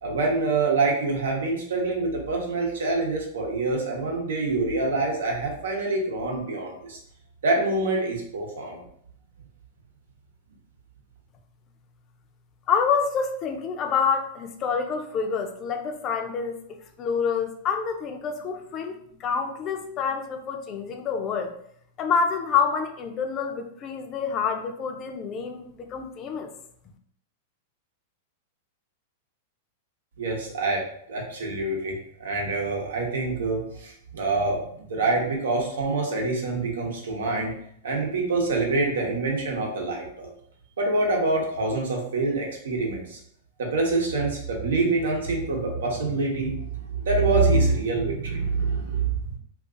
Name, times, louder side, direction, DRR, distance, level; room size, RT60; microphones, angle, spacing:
voice 1, 0.0-7.0 7.4-8.8 30.2-37.5 37.8-40.3 40.8-43.2 43.6-49.1, right 3 dB, 85° right, 0 dB, 0.9 m, -26 dB
voice 2, 12.7-21.5 22.0-26.5, left 6 dB, 30° left, 5 dB, 0.4 m, -27 dB
2.5 x 2.4 x 3.7 m, 0.68 s
hypercardioid pair, 135°, 0 cm